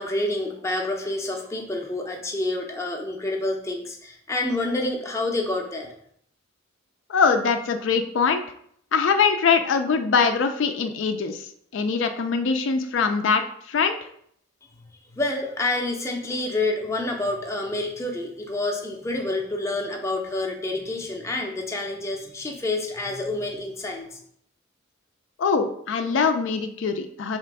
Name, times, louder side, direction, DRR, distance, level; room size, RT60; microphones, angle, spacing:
voice 1, 0.0-5.9 15.1-24.2, left 2 dB, 15° left, 1 dB, 0.5 m, -28 dB
voice 2, 7.1-8.4 8.9-11.4 11.7-13.4 13.7-14.0 25.4-27.4, left 5 dB, 70° left, 7 dB, 0.4 m, -22 dB
3.3 x 2.9 x 4.7 m, 0.66 s
head